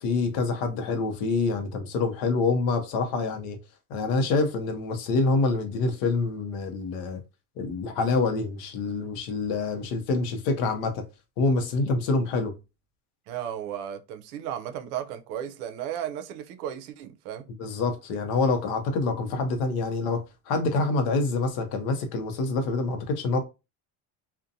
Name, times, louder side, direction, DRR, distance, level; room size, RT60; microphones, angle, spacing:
voice 1, 0.0-3.6 3.9-7.2 7.6-11.0 11.4-12.5 17.6-23.4, left 3 dB, 50° left, 0.6 m, -26 dB
voice 2, 13.3-17.5, right 10 dB, 85° right, 0.6 m, -35 dB
2.5 x 2.1 x 2.6 m
cardioid pair, 180°, 45 cm